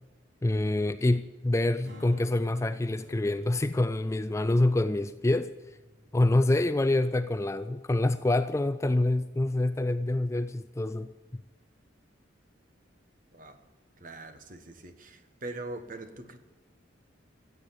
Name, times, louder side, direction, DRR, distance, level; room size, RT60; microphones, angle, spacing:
voice 1, 0.4-5.5 6.1-11.4, left 2 dB, 15° left, 0.3 m, -26 dB
Strum, 1.8-8.2, left 1 dB, 90° right, 3.3 m, -50 dB
voice 2, 13.3-13.6 14.0-16.4, right 2 dB, 45° right, 1.2 m, -42 dB
15.0 x 8.1 x 8.9 m
head